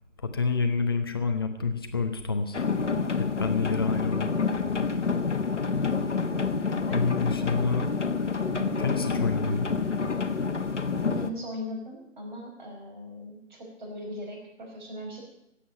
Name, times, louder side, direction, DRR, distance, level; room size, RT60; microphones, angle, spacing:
voice 1, 0.2-2.6 3.2-4.3 6.9-7.9 8.8-9.7, left 4 dB, 20° left, 6 dB, 0.9 m, -28 dB
sound 1, 2.5-11.3, left 5 dB, 65° left, 1.4 m, -28 dB
voice 2, 3.8-4.1 6.9-7.5 11.1-15.2, left 1 dB, 35° right, 1 dB, 5.2 m, -39 dB
15.5 x 8.6 x 9.2 m, 0.79 s
figure-of-eight pair, 160°, 38 cm